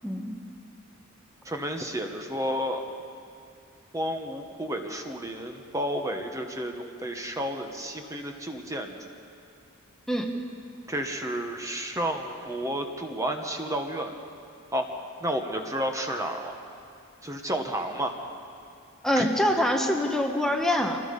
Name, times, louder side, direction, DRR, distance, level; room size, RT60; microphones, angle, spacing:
voice 1, 0.0-0.4 10.1-10.3 19.0-21.0, left 1 dB, ahead, 1 dB, 1.2 m, -25 dB
voice 2, 1.4-2.9 3.9-9.1 10.9-14.1 14.7-14.9 15.2-16.6 17.2-18.2 19.2-19.3, right 1 dB, 15° right, 3 dB, 1.3 m, -31 dB
25.5 x 19.5 x 5.4 m, 2.4 s
head